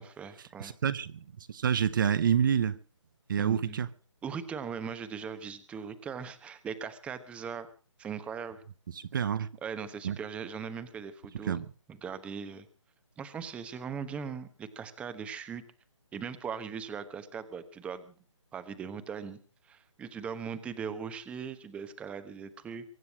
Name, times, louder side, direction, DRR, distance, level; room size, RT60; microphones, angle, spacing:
voice 1, 0.0-0.7 3.4-3.8 4.2-7.7 8.0-8.6 9.6-11.6 11.9-12.7 13.2-15.6 16.1-18.1 18.5-19.4 19.6-22.8, right 6 dB, 5° right, 1.1 m, -39 dB
voice 2, 0.6-2.8 3.3-3.9 8.9-9.5 10.0-10.2 11.4-11.7, right 8 dB, 40° right, 0.9 m, -28 dB
23.5 x 9.4 x 6.2 m
figure-of-eight pair, 155°, 16 cm